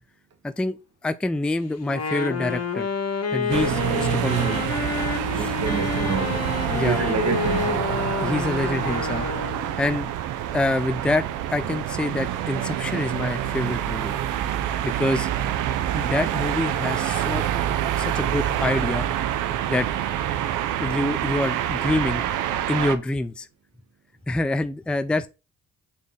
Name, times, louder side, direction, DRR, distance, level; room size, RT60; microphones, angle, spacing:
voice 1, 0.4-0.8 1.0-2.9 3.3-4.7 5.3-5.5 6.7-7.0 8.2-9.3 9.8-10.1 10.5-14.1 14.8-15.3 15.9-17.4 18.0-19.1 19.7-19.9 20.8-22.2 22.7-23.5 24.3-25.3, left 2 dB, 5° left, 0.4 m, -26 dB
Wind instrument woodwind instrument, 1.8-9.8, left 5 dB, 55° left, 1.5 m, -29 dB
sound 1, 3.5-23.0, right 11 dB, 90° right, 0.7 m, -26 dB
voice 2, 5.3-6.5 6.8-7.9, right 5 dB, 55° right, 1.6 m, -28 dB
7.2 x 4.1 x 3.4 m
cardioid pair, 90°, 30 cm